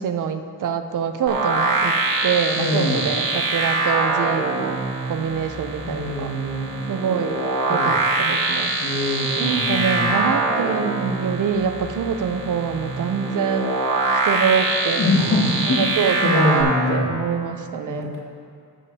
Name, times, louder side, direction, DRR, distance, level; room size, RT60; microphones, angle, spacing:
voice 1, 0.0-2.0 2.2-4.8 5.1-6.3 6.9-7.4 7.7-8.8 9.4-13.8 14.2-18.1, right 7 dB, 65° right, 7 dB, 0.6 m, -25 dB
sound 1, 1.3-16.6, right 3 dB, 85° right, 1.5 m, -24 dB
voice 2, 2.6-3.0 5.8-6.7 7.7-7.9 8.8-10.3 14.9-15.9 16.2-17.1 17.9-18.2, left 2 dB, 65° left, -4 dB, 1.9 m, -23 dB
14.5 x 7.1 x 2.8 m, 2.3 s
wide cardioid pair, 115°, 34 cm